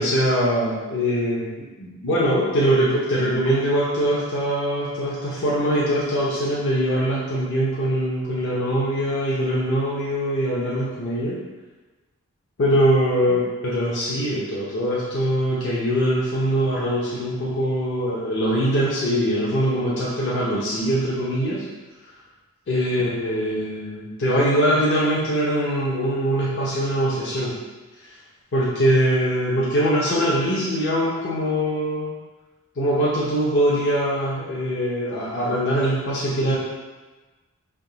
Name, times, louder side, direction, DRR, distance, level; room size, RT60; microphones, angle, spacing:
voice 1, 0.0-11.4 12.6-21.7 22.7-27.6 28.0-28.1 28.5-32.1 32.8-36.6, equal, 55° left, -7 dB, 0.6 m, -22 dB
3.5 x 2.6 x 3.8 m, 1.2 s
head